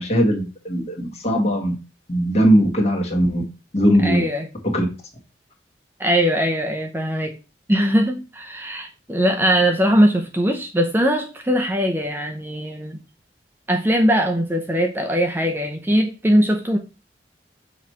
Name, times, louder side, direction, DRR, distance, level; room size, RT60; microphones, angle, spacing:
voice 1, 0.0-1.7 2.1-3.4 3.7-4.2 4.6-4.8, equal, 35° left, 1.6 m, -19 dB
voice 2, 4.0-4.5 6.0-7.4 7.7-13.0 13.7-16.8, equal, 10° right, 0.6 m, -20 dB
6.4 x 3.1 x 5.5 m
head